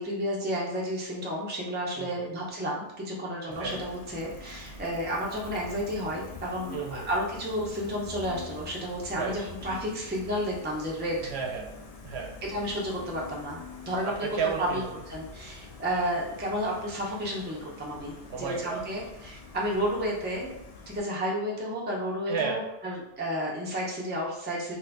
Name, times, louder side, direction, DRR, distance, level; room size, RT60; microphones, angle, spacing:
voice 1, 0.0-11.3 12.4-14.3 14.6-20.5 20.9-24.8, equal, 15° right, -3 dB, 0.4 m, -32 dB
voice 2, 2.0-2.3 3.5-3.8 6.7-7.1 9.1-9.5 11.3-11.7 12.0-12.4 14.0-14.9 18.3-18.8 22.3-22.6, right 6 dB, 70° right, 0 dB, 0.8 m, -33 dB
Gull seagull, 3.5-21.0, left 4 dB, 75° left, 0.3 m, -45 dB
2.7 x 2.5 x 3.3 m, 0.88 s
omnidirectional pair, 1.2 m